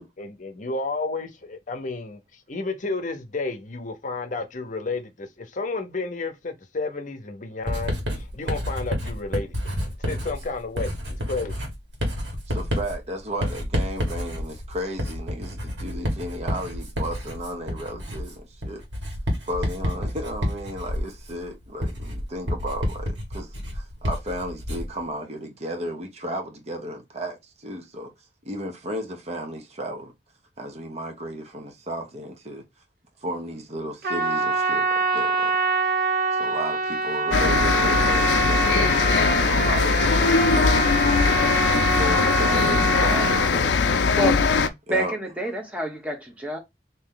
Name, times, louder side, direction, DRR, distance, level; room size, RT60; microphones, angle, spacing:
voice 1, 0.2-11.6, left 3 dB, 45° left, 0.7 m, -32 dB
Writing, 7.7-25.0, equal, 80° right, 1.5 m, -29 dB
voice 2, 12.5-18.8 19.5-28.1 28.4-30.1 30.6-32.6 33.2-35.5 36.3-43.8 44.9-45.1, equal, 40° right, 0.9 m, -34 dB
Trumpet, 34.0-43.5, right 3 dB, 60° right, 0.7 m, -25 dB
sound 1, 37.3-44.7, left 5 dB, 85° left, 0.4 m, -21 dB
voice 3, 44.9-46.6, right 1 dB, 10° right, 1.1 m, -27 dB
3.2 x 2.8 x 3.8 m
head